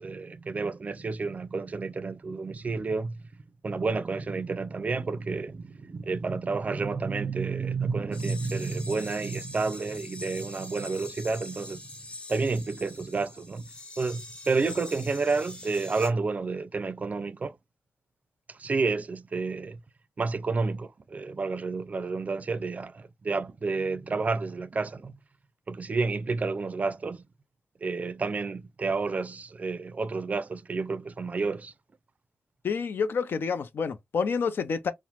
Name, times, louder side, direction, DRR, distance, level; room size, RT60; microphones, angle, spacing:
voice 1, 0.0-3.2 3.6-11.8 12.3-13.7 14.0-17.6 18.5-19.8 20.2-25.1 25.7-27.2 27.8-31.7, right 4 dB, 40° right, 0.4 m, -30 dB
sound 1, 8.1-16.1, left 1 dB, 25° left, 0.9 m, -43 dB
voice 2, 32.6-34.9, left 5 dB, 70° left, 0.4 m, -28 dB
2.9 x 2.0 x 2.8 m
cardioid pair, 75°, 4 cm